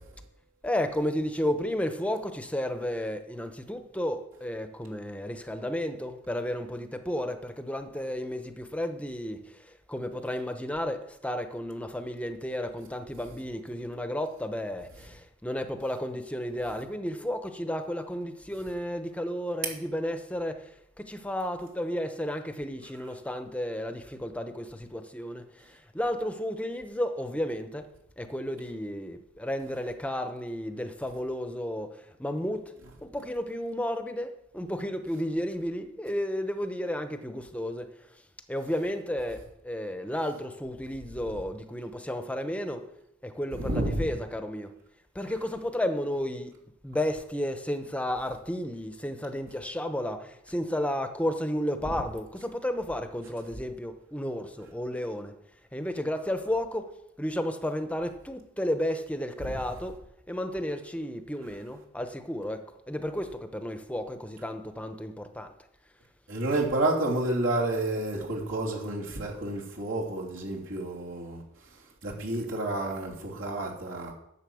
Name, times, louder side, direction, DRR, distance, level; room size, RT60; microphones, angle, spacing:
voice 1, 0.6-9.4 9.9-11.0 11.2-14.9 15.4-20.5 21.1-24.6 24.9-25.4 25.9-27.8 28.3-31.9 32.2-32.6 33.1-34.3 34.5-37.8 38.5-39.4 39.7-42.8 43.4-44.7 45.2-46.5 46.8-50.2 50.5-55.3 55.7-56.8 57.2-59.9 60.3-62.6 62.9-65.5, left 1 dB, 5° left, 0.9 m, -32 dB
voice 2, 43.6-44.1 59.4-59.6 66.3-71.4 72.0-74.1, right 2 dB, 75° right, 3.2 m, -30 dB
10.5 x 7.5 x 6.3 m
head